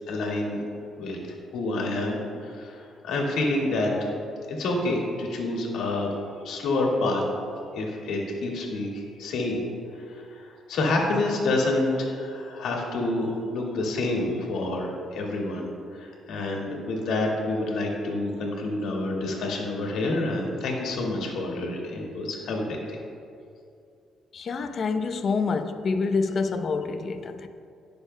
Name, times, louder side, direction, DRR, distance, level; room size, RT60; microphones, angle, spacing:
voice 1, 0.1-0.6 1.0-1.2 1.5-4.1 4.5-6.1 6.4-7.2 7.7-9.6 9.9-22.8, left 2 dB, 80° left, -1 dB, 1.9 m, -28 dB
voice 2, 24.3-27.5, left 4 dB, 50° left, 7 dB, 0.7 m, -27 dB
18.0 x 6.7 x 2.2 m, 2.5 s
cardioid pair, 90°, 0 cm